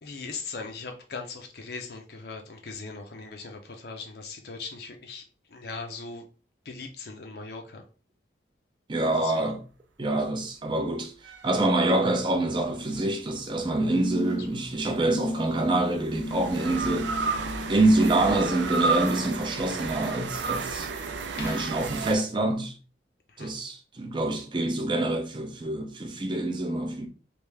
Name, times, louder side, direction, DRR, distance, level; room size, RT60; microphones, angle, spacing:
voice 1, 0.0-5.2 5.5-6.2 6.7-7.8 9.2-9.3 21.4-21.7 23.3-23.5, left 4 dB, 55° left, 0.5 m, -39 dB
voice 2, 8.9-9.6 10.0-17.3 17.7-20.9 21.4-22.7 23.4-27.1, right 2 dB, 25° right, 0.5 m, -26 dB
sound 1, 11.2-12.7 14.6-22.1, right 4 dB, 75° right, 0.4 m, -32 dB
sound 2, 12.6-13.2 13.9-14.6 15.0-15.5 16.2-17.8 19.0-19.1, right 1 dB, 85° left, 0.9 m, -36 dB
3.4 x 2.6 x 3.2 m
head